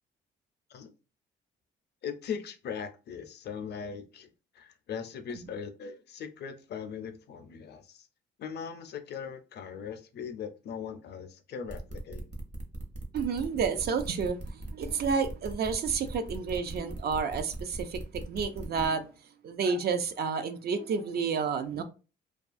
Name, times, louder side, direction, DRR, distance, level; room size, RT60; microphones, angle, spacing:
voice 1, 2.0-4.3 4.5-8.1 8.4-12.3, left 7 dB, 55° left, 0.4 m, -39 dB
sound 1, 11.7-18.9, right 1 dB, 35° right, 0.8 m, -40 dB
voice 2, 13.1-14.4 14.7-19.1 19.4-21.8, right 5 dB, 55° right, 0.4 m, -30 dB
2.3 x 2.3 x 2.5 m
cardioid pair, 90°, 20 cm